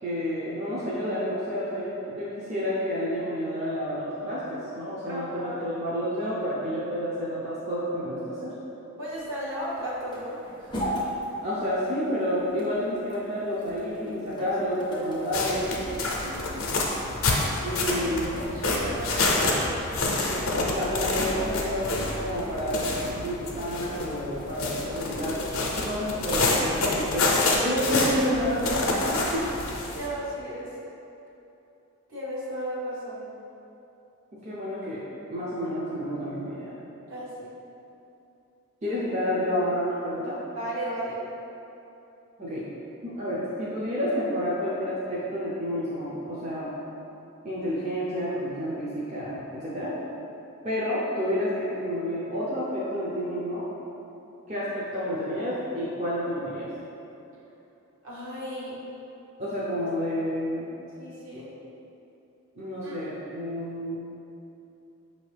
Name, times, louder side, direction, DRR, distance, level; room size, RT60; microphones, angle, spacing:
voice 1, 0.0-8.6 11.4-15.7 17.6-18.6 20.3-21.9 22.2-22.8 23.2-25.4 25.8-29.1 29.3-29.5 34.4-36.7 38.8-40.4 42.4-42.6 43.0-46.7 47.4-49.9 50.6-53.7 54.5-56.7 59.4-60.7 62.6-64.0, equal, 30° right, -9 dB, 0.5 m, -30 dB
voice 2, 5.1-5.7 9.0-10.8 14.4-14.5 14.7-15.1 16.2-16.7 17.7-19.6 29.9-30.8 32.1-33.3 37.1-37.5 40.5-41.2 58.0-58.8 61.0-61.5 62.8-63.0, equal, 65° right, -7 dB, 1.1 m, -35 dB
sound 1, 9.1-27.1, equal, 20° left, 0.4 m, -41 dB
sound 2, 15.3-30.1, left 2 dB, 70° left, 0.5 m, -28 dB
5.2 x 2.7 x 3.3 m, 2.9 s
head